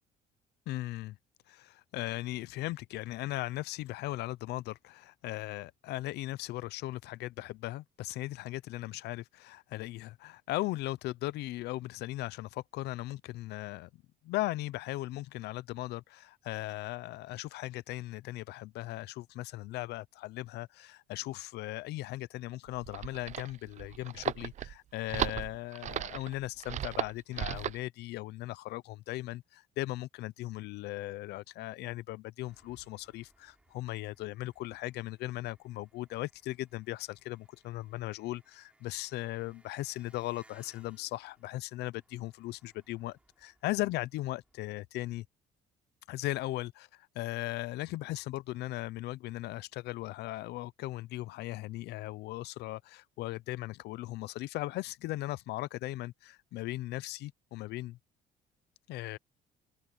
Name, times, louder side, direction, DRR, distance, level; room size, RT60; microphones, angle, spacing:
voice 1, 0.7-1.2 1.5-13.9 14.2-45.3 46.1-58.0 58.9-59.2, left 17 dB, 80° left, 0.6 m, -38 dB
paper sounds, 22.7-27.8, right 11 dB, 45° right, 0.5 m, -36 dB
Engine, 32.5-44.7, right 1 dB, 5° right, 3.3 m, -68 dB
cardioid pair, 110°, 17 cm